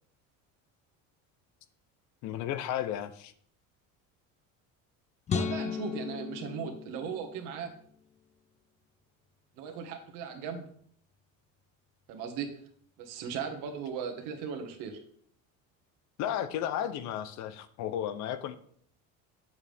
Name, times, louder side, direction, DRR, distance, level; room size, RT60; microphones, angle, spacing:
voice 1, 2.2-3.3 16.2-18.6, left 10 dB, 55° left, 12 dB, 0.7 m, -33 dB
sound 1, 5.3-7.6, left 6 dB, 20° left, 0.4 m, -35 dB
voice 2, 5.3-7.7 9.5-10.6 12.1-12.5 13.0-15.0, right 6 dB, 70° right, 5 dB, 1.6 m, -37 dB
8.4 x 7.2 x 3.5 m, 0.62 s
cardioid pair, 155°, 34 cm